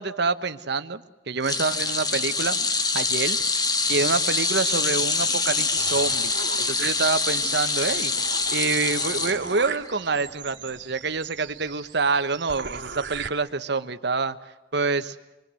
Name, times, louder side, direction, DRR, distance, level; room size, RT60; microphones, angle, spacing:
voice 1, 0.0-2.6 2.9-3.4 3.9-6.3 6.7-8.1 8.5-14.4 14.7-15.2, right 4 dB, 65° right, 11 dB, 1.2 m, -26 dB
sound 1, 1.4-9.9 10.3-10.5 11.7-11.8, left 4 dB, 20° left, 1.3 m, -25 dB
sound 2, 5.8-7.4 7.8-7.9 8.2-13.3, right 5 dB, 90° right, 2.1 m, -38 dB
26.0 x 23.5 x 7.7 m, 1.0 s
head